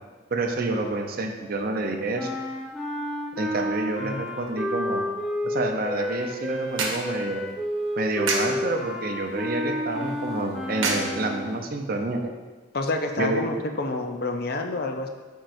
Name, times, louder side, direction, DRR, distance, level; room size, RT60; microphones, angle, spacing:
voice 1, 0.3-2.3 3.4-5.0 5.4-7.4 8.0-12.4 13.2-13.5, right 2 dB, 45° right, 3 dB, 0.6 m, -28 dB
sound 1, 2.1-11.7, left 1 dB, ahead, 0.8 m, -31 dB
sound 2, 5.9-11.8, right 3 dB, 85° right, 0.9 m, -34 dB
voice 2, 12.7-15.1, left 2 dB, 50° left, 4 dB, 0.5 m, -28 dB
8.9 x 4.6 x 2.6 m, 1.3 s
head